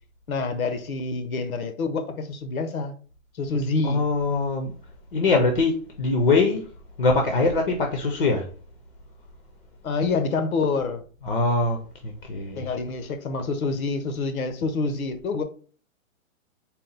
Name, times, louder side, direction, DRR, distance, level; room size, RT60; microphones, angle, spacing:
voice 1, 0.3-2.9 3.4-4.0 9.8-11.0 12.6-15.4, left 4 dB, 85° left, 1.0 m, -27 dB
voice 2, 3.8-4.7 5.1-6.6 7.0-8.5 11.2-11.8 12.0-12.6, left 3 dB, 40° left, 0.5 m, -22 dB
4.1 x 2.1 x 4.0 m
hypercardioid pair, 170°, 41 cm